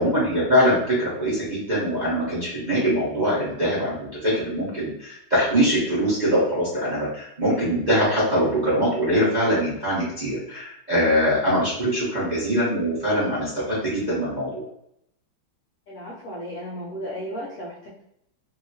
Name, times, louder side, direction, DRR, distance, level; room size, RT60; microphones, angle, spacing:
voice 1, 0.0-14.6, equal, 35° right, -9 dB, 0.7 m, -23 dB
voice 2, 15.9-18.0, left 1 dB, 65° left, -6 dB, 0.9 m, -34 dB
2.9 x 2.8 x 2.7 m, 0.76 s
omnidirectional pair, 2.2 m